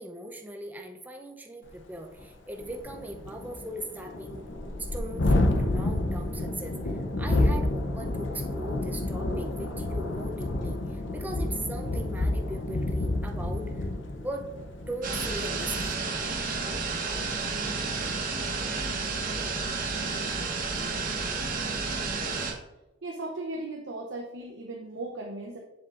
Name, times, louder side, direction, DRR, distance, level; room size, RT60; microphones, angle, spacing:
voice 1, 0.0-4.4 4.8-6.8 7.2-13.9 14.2-14.5 14.8-16.0, right 1 dB, 10° right, 3 dB, 0.6 m, -39 dB
Thunderstorm, 1.7-1.8 2.2-2.3 2.6-16.2, left 1 dB, 75° left, 0.7 m, -29 dB
sound 1, 15.0-22.5, right 4 dB, 45° right, 1.0 m, -31 dB
voice 2, 23.0-25.6, right 2 dB, 75° right, 0 dB, 0.8 m, -37 dB
7.1 x 6.9 x 2.5 m, 1.0 s
head